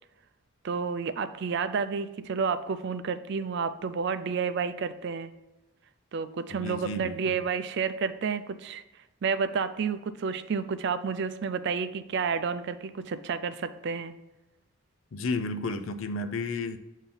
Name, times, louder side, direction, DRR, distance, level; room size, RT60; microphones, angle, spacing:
voice 1, 0.6-5.3 6.1-8.8 9.2-14.1, right 5 dB, 50° right, 11 dB, 0.3 m, -30 dB
voice 2, 6.5-7.4 15.1-16.8, left 3 dB, 65° left, 9 dB, 0.5 m, -32 dB
7.0 x 2.7 x 5.6 m, 1.0 s
head